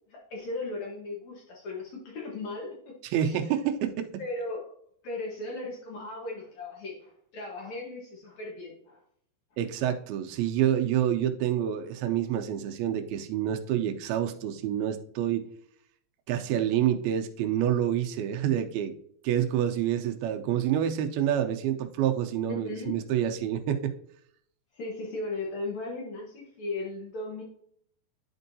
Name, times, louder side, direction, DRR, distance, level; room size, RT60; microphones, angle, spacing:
voice 1, 0.1-3.0 3.2-3.4 4.2-4.7 5.0-9.0 22.5-23.0 24.7-27.4, left 2 dB, 60° left, -2 dB, 2.0 m, -37 dB
voice 2, 3.0-4.1 9.6-15.5 16.3-18.9 19.2-23.9, right 10 dB, 80° right, 5 dB, 2.5 m, -27 dB
11.0 x 4.5 x 2.7 m, 0.65 s
omnidirectional pair, 4.4 m